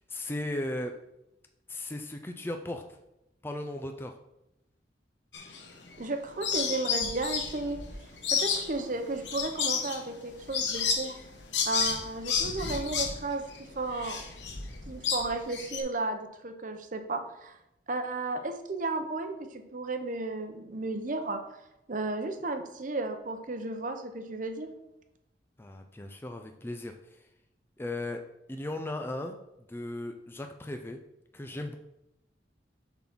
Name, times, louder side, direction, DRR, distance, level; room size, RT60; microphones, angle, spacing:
voice 1, 0.1-1.0 1.7-2.8 3.4-4.2 25.6-27.2 27.8-28.2 28.5-29.4 29.7-31.0 31.3-31.8, left 1 dB, 15° left, 5 dB, 0.4 m, -36 dB
sound 1, 5.3-6.1 6.4-15.8, left 6 dB, 85° left, 1.0 m, -31 dB
voice 2, 6.0-7.8 8.3-11.2 11.7-14.2 14.9-17.6 17.9-21.4 21.9-24.7, right 2 dB, 45° right, 6 dB, 0.8 m, -34 dB
7.1 x 4.0 x 6.0 m, 0.87 s
head